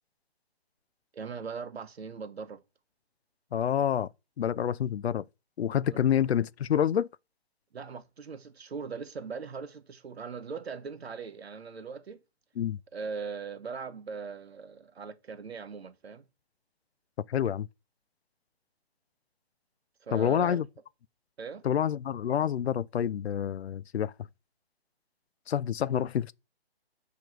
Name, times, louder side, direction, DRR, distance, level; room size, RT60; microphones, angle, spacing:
voice 1, 1.1-2.6 5.9-6.0 7.7-12.2 12.9-16.2 20.0-20.7 21.4-21.6, right 5 dB, 80° right, 1.2 m, -40 dB
voice 2, 3.5-4.1 4.4-5.2 5.6-7.1 12.6-12.8 17.3-17.7 20.1-20.6 21.6-24.1 25.5-26.3, left 9 dB, 80° left, 0.5 m, -27 dB
7.0 x 3.1 x 6.0 m
hypercardioid pair, 165°, 31 cm